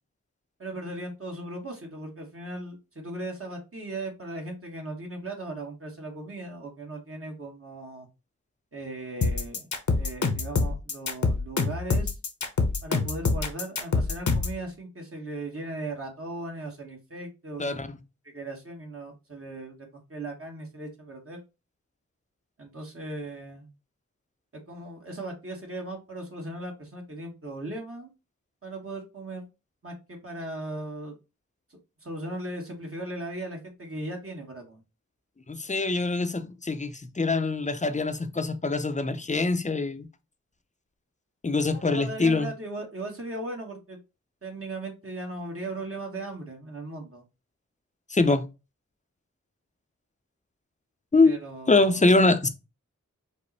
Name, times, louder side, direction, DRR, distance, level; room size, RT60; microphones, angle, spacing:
voice 1, 0.6-8.1 8.7-9.7 9.9-12.2 12.8-17.8 18.2-21.4 22.6-23.7 24.5-28.1 28.6-29.5 29.8-31.1 31.7-34.8 41.7-44.0 44.4-47.2 51.2-52.3, right 2 dB, 50° right, 1.4 m, -38 dB
sound 1, 9.2-14.6, left 4 dB, 70° left, 0.9 m, -25 dB
voice 2, 17.6-18.0 35.5-40.1 41.4-42.5 48.1-48.4 51.1-51.3 51.7-52.5, left 3 dB, 25° left, 0.6 m, -24 dB
5.2 x 2.1 x 4.1 m
wide cardioid pair, 55°, 30 cm